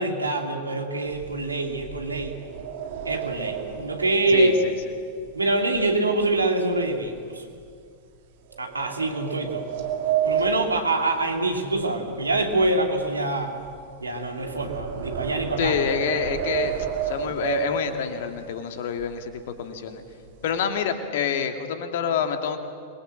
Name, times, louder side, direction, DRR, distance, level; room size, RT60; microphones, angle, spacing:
voice 1, 0.0-2.3 3.1-4.5 5.3-7.4 8.6-9.6 10.2-13.5 14.0-15.7, right 2 dB, 80° right, 3 dB, 2.8 m, -25 dB
sound 1, 1.1-6.4 6.7-7.1 7.6-7.7 8.5-11.8 12.1-18.3 18.9-19.0 19.3-19.6 19.9-20.6, right 6 dB, 55° right, 2.6 m, -31 dB
voice 2, 4.3-4.7 15.6-16.7 17.0-20.0 20.4-22.6, left 7 dB, 55° left, 6 dB, 2.2 m, -27 dB
27.0 x 22.0 x 7.7 m, 2.2 s
figure-of-eight pair, 90°, 0 cm